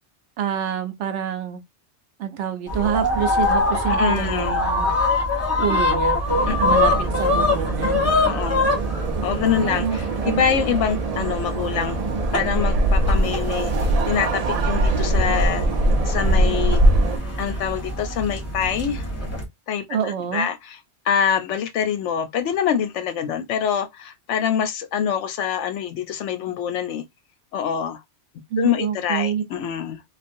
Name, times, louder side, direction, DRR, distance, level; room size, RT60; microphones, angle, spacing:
voice 1, 0.4-1.6 2.2-5.3 5.6-6.2 6.6-8.2 9.5-10.4 19.9-20.5 28.5-29.4, right 8 dB, 80° right, 1.0 m, -27 dB
sound 1, 2.7-19.4, left 2 dB, 15° left, 0.9 m, -24 dB
voice 2, 3.9-4.6 6.5-6.6 8.2-8.7 9.2-12.0 12.3-13.7 14.1-15.7 16.1-16.8 17.4-19.1 19.7-19.9 20.3-20.8 21.0-27.0 27.5-28.0 28.6-30.0, left 8 dB, 85° left, 0.9 m, -25 dB
sound 2, 6.3-17.2, right 1 dB, 50° right, 0.5 m, -23 dB
3.1 x 2.4 x 2.6 m
omnidirectional pair, 1.2 m